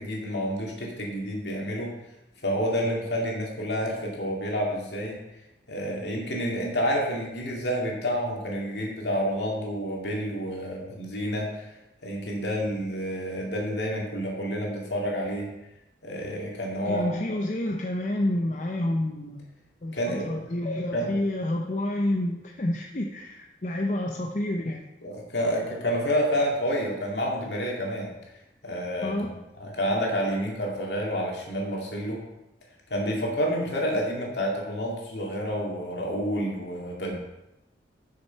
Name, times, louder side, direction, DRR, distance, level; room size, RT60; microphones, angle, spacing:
voice 1, 0.0-1.9 2.4-5.2 5.7-11.7 12.0-15.5 16.0-17.2 19.9-20.4 20.9-21.2 25.0-28.1 28.6-29.3 29.6-32.2 32.9-37.1, equal, 75° left, -1 dB, 2.3 m, -29 dB
voice 2, 16.8-19.5 19.8-24.8 29.0-29.3, left 1 dB, 40° left, 2 dB, 0.6 m, -29 dB
7.2 x 6.5 x 5.8 m, 0.94 s
head